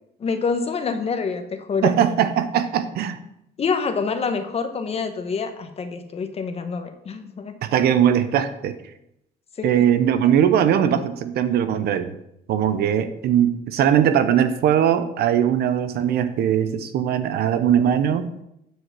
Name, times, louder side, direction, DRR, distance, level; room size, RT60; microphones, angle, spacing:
voice 1, 0.2-1.9 3.6-7.6 9.6-9.8 10.2-10.3, left 5 dB, 35° left, 7 dB, 1.1 m, -26 dB
voice 2, 1.8-3.2 7.6-8.8 9.6-12.2 12.5-18.3, right 9 dB, 70° right, 12 dB, 0.8 m, -20 dB
9.4 x 4.8 x 5.9 m, 0.81 s
cardioid pair, 110°, 17 cm